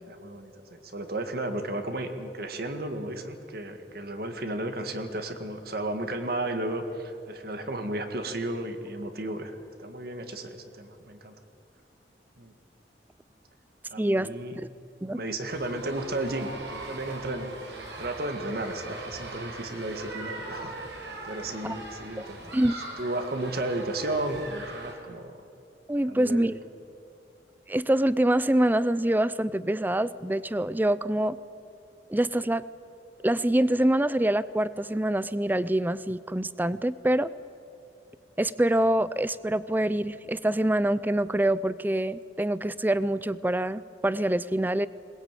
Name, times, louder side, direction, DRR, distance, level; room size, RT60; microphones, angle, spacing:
voice 1, 0.1-11.3 12.4-12.5 13.9-14.6 15.1-22.4 23.0-25.4 26.1-26.5, right 1 dB, 60° right, 7 dB, 1.9 m, -34 dB
voice 2, 14.0-14.3 15.0-15.2 21.6-21.8 22.2-22.3 22.5-22.7 25.9-26.5 27.7-31.4 32.1-32.6 33.2-37.3 38.4-44.9, right 1 dB, 10° right, 17 dB, 0.5 m, -25 dB
sound 1, 15.5-24.9, right 2 dB, 85° right, 4.3 m, -40 dB
21.5 x 19.5 x 9.1 m, 2.5 s
head